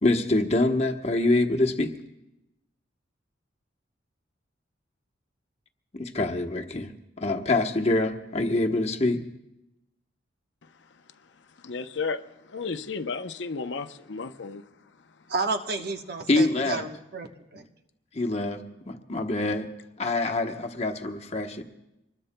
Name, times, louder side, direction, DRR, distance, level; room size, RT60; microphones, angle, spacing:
voice 1, 0.0-1.9 5.9-9.2 16.3-16.8 18.1-18.6 18.9-19.7 20.0-21.6, left 2 dB, 35° left, 5 dB, 1.0 m, -25 dB
voice 2, 11.6-12.2 12.5-14.6, left 4 dB, 75° left, 8 dB, 0.7 m, -33 dB
voice 3, 15.3-17.6, right 3 dB, 55° right, 5 dB, 1.0 m, -31 dB
25.5 x 20.5 x 2.2 m, 0.91 s
head